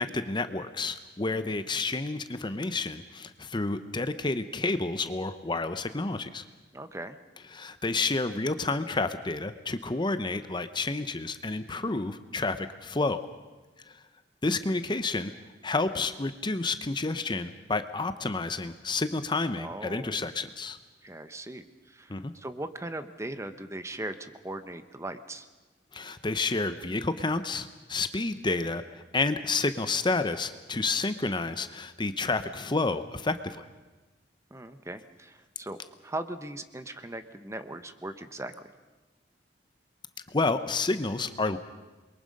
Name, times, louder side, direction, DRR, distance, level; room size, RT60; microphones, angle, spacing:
voice 1, 0.0-6.4 7.5-13.2 13.9-14.0 14.4-15.3 15.6-20.8 22.1-22.3 25.9-33.7 40.3-41.6, left 3 dB, 25° left, 10 dB, 0.8 m, -30 dB
voice 2, 6.7-7.2 19.6-20.3 21.0-21.6 21.9-25.5 34.5-38.7, right 1 dB, 15° right, 10 dB, 1.0 m, -39 dB
28.5 x 22.5 x 5.4 m, 1.2 s
head